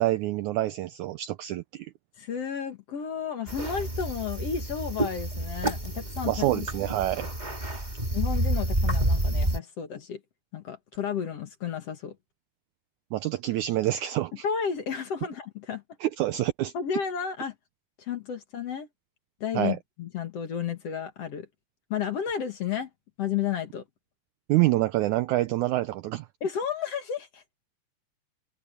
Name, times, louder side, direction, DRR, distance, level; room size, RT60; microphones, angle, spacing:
voice 1, 0.0-1.9 6.3-7.3 13.1-14.4 16.0-16.7 19.5-19.8 24.5-26.3, right 15 dB, 80° right, 1.7 m, -26 dB
voice 2, 2.2-7.0 8.1-10.2 10.5-12.2 14.4-15.8 16.7-17.5 18.0-18.9 19.4-21.5 21.9-22.9 23.2-23.8 26.4-27.4, left 7 dB, 50° left, 2.2 m, -32 dB
sound 1, 3.5-9.6, right 1 dB, 15° right, 2.7 m, -29 dB
omnidirectional pair, 4.0 m